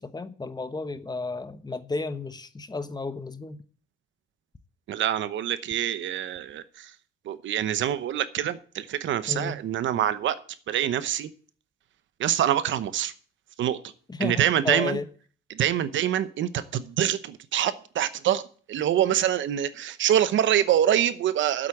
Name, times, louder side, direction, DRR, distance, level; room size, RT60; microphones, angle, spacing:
voice 1, 0.0-3.6 9.3-9.6 14.1-15.1, left 3 dB, 20° left, 1.0 m, -32 dB
voice 2, 4.9-6.9 7.3-10.4 10.7-11.3 12.2-13.1 13.6-13.8 14.2-15.0 15.5-18.4 18.7-21.7, right 11 dB, 75° right, 0.9 m, -25 dB
8.2 x 7.8 x 8.5 m
cardioid pair, 90°, 20 cm